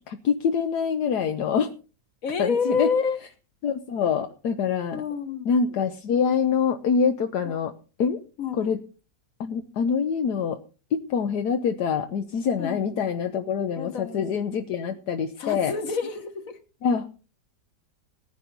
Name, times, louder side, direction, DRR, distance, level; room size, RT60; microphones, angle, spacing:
voice 1, 0.1-1.7 2.4-2.9 3.6-5.0 5.4-7.7 8.0-8.2 8.5-8.8 9.4-10.6 10.9-15.7 16.8-17.1, left 6 dB, 75° left, 6 dB, 1.4 m, -25 dB
voice 2, 2.2-3.2 4.9-5.5 7.4-7.6 8.4-8.7 12.6-12.8 13.8-14.3 15.4-16.6, left 5 dB, 55° left, 8 dB, 1.9 m, -28 dB
16.5 x 10.5 x 4.0 m, 0.36 s
omnidirectional pair, 1.7 m